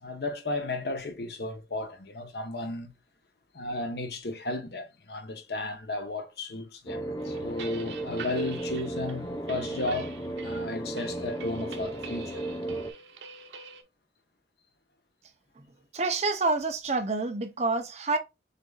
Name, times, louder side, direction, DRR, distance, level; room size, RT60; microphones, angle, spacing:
voice 1, 0.0-2.9 3.5-10.1 10.4-12.8, left 2 dB, 65° left, 0.9 m, -34 dB
sound 1, 6.9-12.9, right 1 dB, 15° left, 0.5 m, -35 dB
sound 2, 7.2-13.8, right 5 dB, 85° right, 0.9 m, -45 dB
voice 2, 15.9-18.2, right 3 dB, 40° right, 0.6 m, -27 dB
6.6 x 2.6 x 2.3 m
head